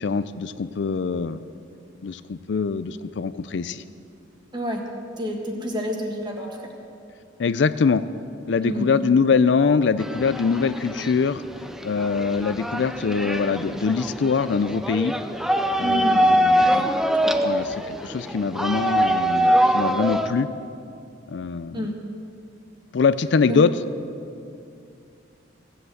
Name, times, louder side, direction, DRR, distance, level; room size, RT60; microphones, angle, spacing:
voice 1, 0.0-1.4 2.0-3.8 7.4-8.0 8.5-11.4 11.8-15.1 15.8-16.9 17.4-20.5 21.3-21.9 22.9-23.7, left 5 dB, 65° left, 13 dB, 0.4 m, -23 dB
voice 2, 4.5-4.8 5.2-6.7 8.6-8.9 15.8-16.2 16.7-16.9 17.2-17.5 21.7-21.9 23.5-23.6, equal, 25° right, 1 dB, 1.8 m, -29 dB
sound 1, 10.0-20.3, right 1 dB, ahead, 0.5 m, -23 dB
16.5 x 7.9 x 7.9 m, 2.5 s
head